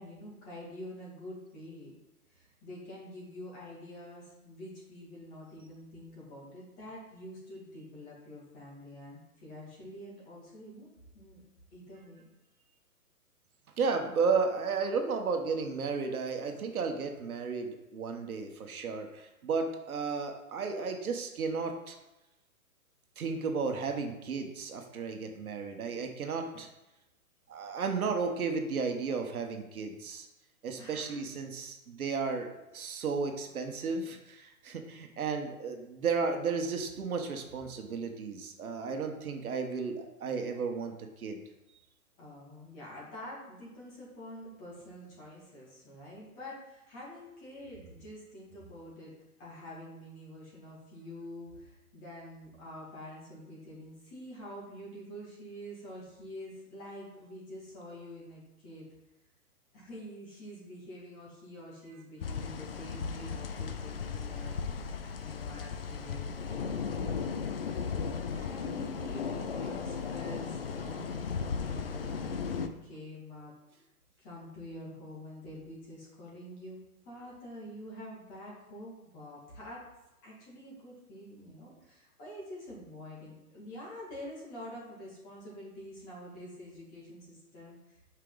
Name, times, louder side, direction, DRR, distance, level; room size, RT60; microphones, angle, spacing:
voice 1, 0.0-1.9 2.3-10.9 11.1-11.4 11.7-12.3 30.7-31.2 42.2-49.1 49.4-58.9 59.7-64.6 65.2-67.6 68.3-71.1 71.4-73.8 74.2-79.8 80.2-88.1, left 1 dB, 20° left, -5 dB, 2.2 m, -47 dB
voice 2, 13.8-22.0 23.2-26.7 27.5-30.3 30.6-41.4, right 5 dB, 70° right, 4 dB, 1.5 m, -33 dB
sound 1, 62.2-72.7, left 5 dB, 40° left, 0.5 m, -36 dB
8.3 x 5.7 x 4.0 m, 0.96 s
hypercardioid pair, 165°, 45 cm